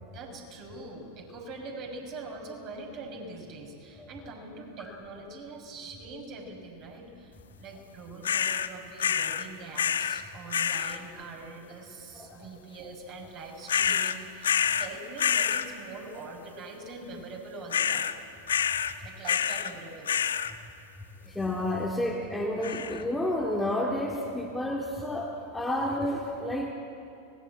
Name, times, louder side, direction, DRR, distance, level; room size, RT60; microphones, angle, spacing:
voice 1, 0.0-18.1 19.0-20.1, right 3 dB, 40° right, 2 dB, 5.9 m, -43 dB
sound 1, 8.2-8.7 9.0-9.5 9.7-10.2 10.5-11.0 13.7-14.9 15.2-15.7 17.7-18.2 18.5-18.9 19.2-19.7 20.1-20.5 22.6-23.0, left 8 dB, 65° left, 0.9 m, -27 dB
voice 2, 21.3-26.7, left 1 dB, 5° left, -1 dB, 2.3 m, -30 dB
25.0 x 20.0 x 8.8 m, 2.7 s
figure-of-eight pair, 90°, 0 cm